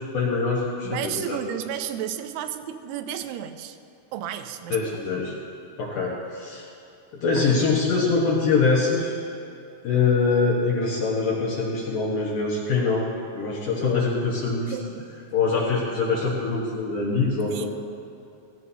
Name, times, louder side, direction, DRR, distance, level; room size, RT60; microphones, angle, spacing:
voice 1, 0.0-1.4 4.7-5.3 5.8-6.7 7.1-9.1 9.8-14.8 15.3-17.7, left 4 dB, 65° left, -4 dB, 2.1 m, -24 dB
voice 2, 0.8-3.8 4.1-4.8 14.7-15.0 17.5-17.7, right 10 dB, 90° right, 9 dB, 3.0 m, -32 dB
16.5 x 16.0 x 2.8 m, 2.7 s
omnidirectional pair, 5.2 m